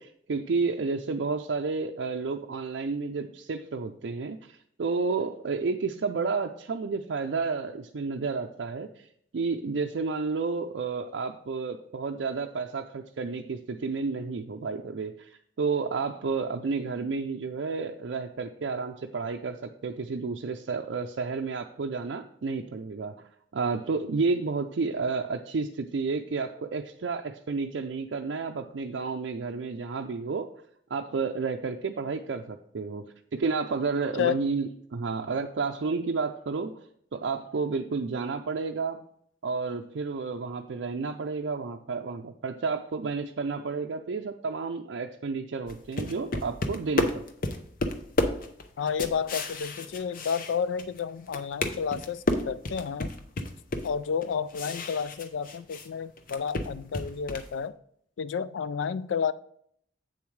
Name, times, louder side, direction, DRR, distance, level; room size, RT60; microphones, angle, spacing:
voice 1, 0.0-9.1 9.3-23.3 23.5-30.5 30.9-33.0 33.3-36.8 37.1-39.0 39.4-47.2, right 4 dB, 75° right, 2 dB, 0.4 m, -31 dB
sound 1, 45.7-51.0 51.3-55.9 56.2-57.5, left 2 dB, 50° left, 0.7 m, -31 dB
voice 2, 48.8-53.1 53.8-57.7 58.2-59.3, left 6 dB, 90° left, 15 dB, 0.4 m, -31 dB
7.9 x 6.9 x 3.2 m, 0.67 s
head